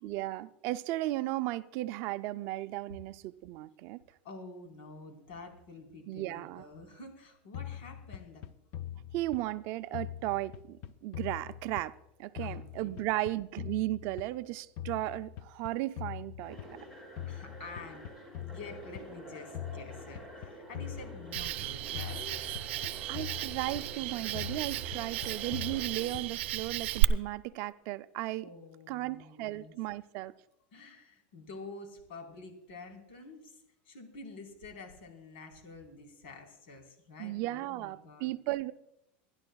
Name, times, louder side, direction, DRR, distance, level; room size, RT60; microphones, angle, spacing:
voice 1, 0.0-4.0 6.1-6.6 9.1-16.6 23.1-28.4 28.9-30.3 37.2-38.7, right 17 dB, 45° right, 0.4 m, -35 dB
voice 2, 4.2-8.4 12.4-13.1 17.3-18.1 18.4-22.6 23.3-23.4 28.4-29.7 30.7-38.3, left 3 dB, 75° left, 4.2 m, -48 dB
sound 1, 7.5-9.6 9.9-12.1 12.4-14.5 14.8-16.9 17.2-19.1 19.5-21.6 21.9-24.0 24.3-26.5, left 11 dB, 40° left, 0.6 m, -43 dB
sound 2, 16.4-26.1, right 1 dB, 5° left, 5.1 m, -49 dB
Cricket, 21.3-27.0, right 17 dB, 80° right, 0.7 m, -34 dB
27.5 x 11.5 x 2.3 m
supercardioid pair, 165°, 6 cm